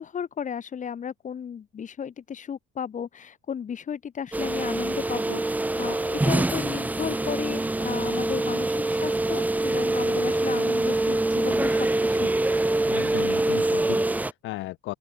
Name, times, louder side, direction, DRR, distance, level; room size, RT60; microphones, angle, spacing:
voice 1, 0.0-12.4, left 7 dB, 35° left, 6.7 m, -34 dB
sound 1, 4.3-14.3, right 2 dB, 10° right, 0.9 m, -25 dB
voice 2, 12.8-14.9, left 17 dB, 70° left, 1.5 m, -35 dB
open air
cardioid pair, 110°, 21 cm